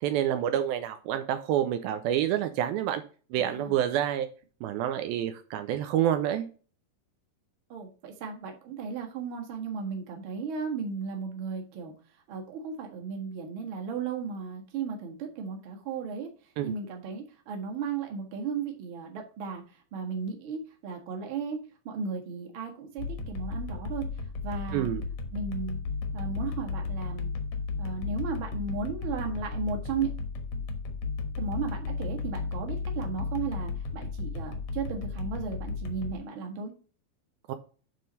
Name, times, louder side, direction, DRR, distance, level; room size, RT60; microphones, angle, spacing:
voice 1, 0.0-3.0 3.3-4.3 4.6-6.5 16.6-16.7 24.7-25.0 37.5-37.6, right 11 dB, 80° right, 8 dB, 2.3 m, -28 dB
voice 2, 3.3-3.8 7.7-11.9 12.3-16.3 16.6-21.6 21.8-24.1 24.4-24.9 25.3-25.8 26.1-27.3 27.8-30.1 31.4-36.7, right 5 dB, 45° right, 2 dB, 1.7 m, -35 dB
sound 1, 23.0-36.1, left 4 dB, 65° left, 1.6 m, -34 dB
9.2 x 3.8 x 5.4 m, 0.38 s
omnidirectional pair, 4.5 m